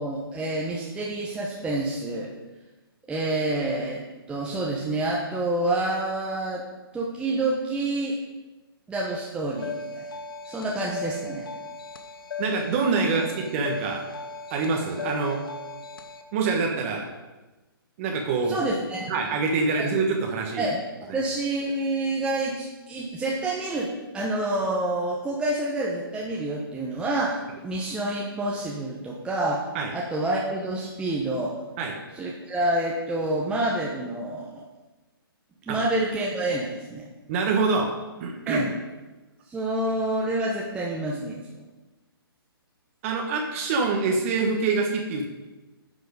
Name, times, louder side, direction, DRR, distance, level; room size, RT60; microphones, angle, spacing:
voice 1, 0.0-2.3 3.1-4.0 4.3-6.6 6.9-8.2 8.9-10.1 10.5-11.5 18.5-19.1 19.8-19.9 20.6-29.6 29.9-31.6 32.1-34.7 35.7-37.1 38.5-38.7 39.5-41.4, right 2 dB, 10° right, -4 dB, 1.0 m, -28 dB
sound 1, 9.6-16.2, left 3 dB, 65° left, 1.1 m, -37 dB
voice 2, 12.4-14.0 14.5-15.4 16.3-17.1 18.0-18.6 19.1-20.7 29.7-29.9 31.8-31.9 35.7-35.8 37.3-37.9 38.2-38.7 43.0-45.2, right 4 dB, 35° right, 1 dB, 1.2 m, -25 dB
10.0 x 6.1 x 5.1 m, 1.1 s
figure-of-eight pair, 135°, 13 cm